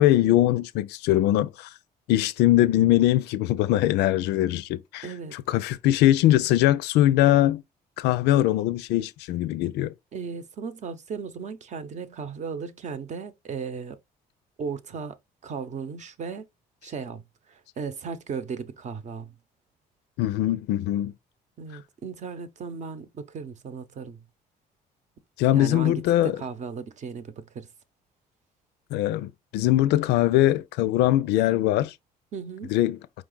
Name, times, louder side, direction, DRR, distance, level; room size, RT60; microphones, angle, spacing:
voice 1, 0.0-1.7 2.1-7.6 8.0-9.9 20.2-21.1 25.4-26.4 28.9-31.9 32.6-33.0, left 14 dB, 85° left, 0.5 m, -22 dB
voice 2, 5.0-5.4 10.1-14.0 14.6-15.1 15.4-16.5 16.8-17.2 17.5-19.3 21.6-24.2 25.5-25.9 26.2-27.7 32.3-32.7, right 5 dB, 45° right, 0.8 m, -36 dB
5.0 x 2.3 x 3.8 m
cardioid pair, 110°, 17 cm